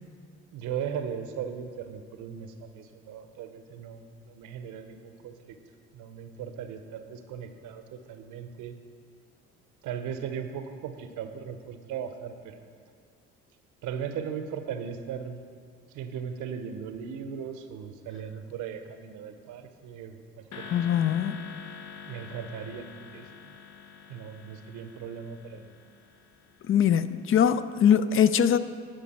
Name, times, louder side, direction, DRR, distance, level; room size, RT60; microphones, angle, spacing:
voice 1, 0.5-5.6 5.9-8.7 9.8-12.7 13.8-15.5 15.9-20.9 22.1-22.9 23.1-23.5 24.1-25.7, right 7 dB, 70° right, 8 dB, 0.7 m, -38 dB
sound 1, 20.5-26.9, left 7 dB, 60° left, 0.8 m, -45 dB
voice 2, 20.7-21.5 26.7-28.6, left 8 dB, 40° left, 14 dB, 0.4 m, -22 dB
11.5 x 5.2 x 4.2 m, 2.2 s
hypercardioid pair, 60°, 32 cm